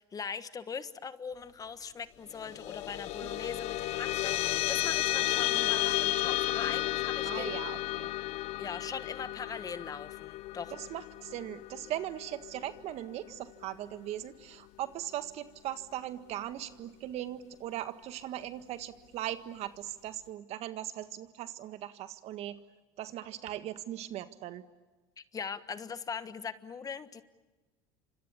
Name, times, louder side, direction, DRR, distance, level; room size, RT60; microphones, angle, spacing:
voice 1, 0.0-7.6 8.6-10.7 25.2-27.2, left 6 dB, 30° left, 12 dB, 1.4 m, -41 dB
sound 1, 2.4-13.1, left 15 dB, 60° left, 0.9 m, -33 dB
voice 2, 7.2-8.1 10.7-22.6 23.0-24.6, right 12 dB, 55° right, 10 dB, 1.7 m, -39 dB
29.5 x 26.0 x 7.2 m, 1.2 s
supercardioid pair, 90°, 13 cm